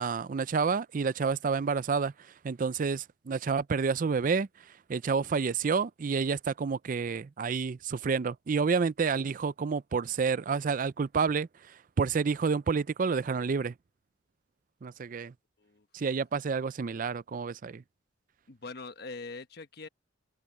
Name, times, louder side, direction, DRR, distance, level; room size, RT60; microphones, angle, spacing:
voice 1, 0.0-13.7 14.8-15.3 15.9-17.8, right 5 dB, 45° right, 0.4 m, -29 dB
voice 2, 18.5-19.9, left 3 dB, 55° left, 1.1 m, -43 dB
head